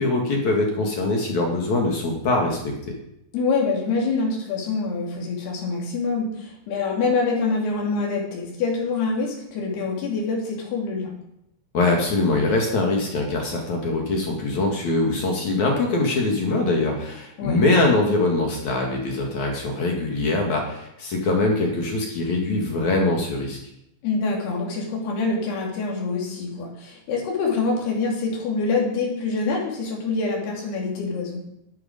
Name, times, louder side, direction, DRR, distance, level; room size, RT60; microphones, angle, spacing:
voice 1, 0.0-2.7 11.7-23.6, left 2 dB, 55° left, 0 dB, 2.6 m, -23 dB
voice 2, 3.3-11.1 17.4-17.6 24.0-31.4, left 4 dB, 70° left, -1 dB, 4.6 m, -25 dB
12.0 x 8.3 x 5.1 m, 0.79 s
omnidirectional pair, 4.8 m